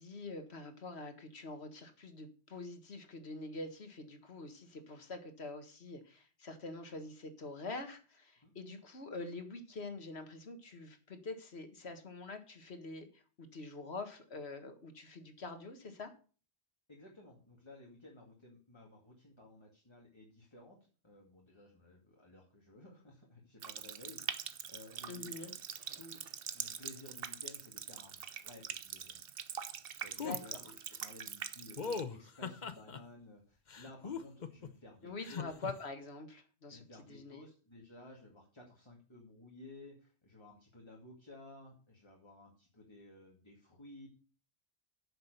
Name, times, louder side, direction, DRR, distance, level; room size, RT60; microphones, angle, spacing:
voice 1, 0.0-16.1 25.1-25.5 30.2-30.6 35.0-37.5, left 3 dB, 75° left, 7 dB, 1.9 m, -45 dB
voice 2, 16.9-20.8 21.0-25.5 25.8-26.2 26.5-29.6 29.9-35.5 36.7-44.1, left 2 dB, 25° left, -2 dB, 2.3 m, -55 dB
Water tap faucet, 23.6-32.0, right 8 dB, 65° right, 0.9 m, -44 dB
sound 1, 30.2-30.4 31.8-33.0 33.7-34.7 35.2-35.7, left 5 dB, 45° left, 0.9 m, -40 dB
9.9 x 6.8 x 6.7 m, 0.38 s
omnidirectional pair, 1.1 m